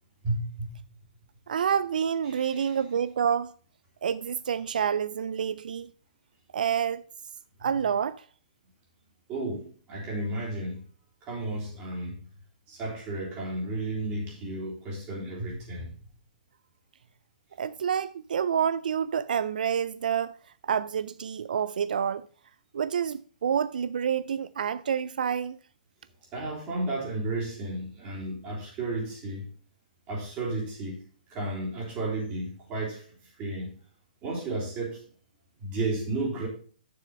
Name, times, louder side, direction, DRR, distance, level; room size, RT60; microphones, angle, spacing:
voice 1, 0.2-0.7 2.3-2.8 9.3-10.8 11.2-12.2 12.7-15.9 26.3-29.5 30.1-31.0 31.3-33.7 34.2-35.0 35.6-36.5, right 2 dB, 25° right, 3.5 m, -33 dB
voice 2, 1.5-3.5 4.0-5.9 6.5-7.0 7.6-8.3 17.6-20.4 20.6-22.2 22.7-25.6, right 8 dB, 85° right, 0.3 m, -28 dB
6.9 x 6.2 x 5.1 m
hypercardioid pair, 155°, 4 cm